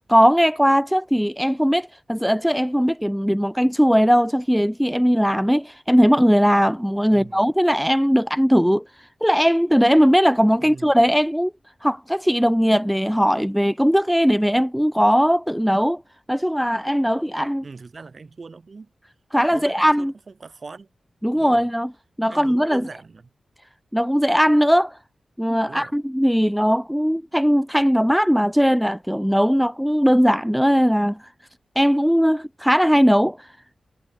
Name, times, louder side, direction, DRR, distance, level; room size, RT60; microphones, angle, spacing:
voice 1, 0.1-11.5 11.8-16.0 16.3-17.6 19.3-20.1 21.2-21.9 22.2-22.9 23.9-25.0 25.4-31.3 31.8-33.5, equal, ahead, 0.7 m, -19 dB
voice 2, 7.1-7.4 10.6-10.9 17.6-18.9 19.5-20.9 21.3-21.7 22.3-23.2 25.7-25.9, right 4 dB, 40° right, 8.0 m, -41 dB
wide cardioid pair, 145°, 0 cm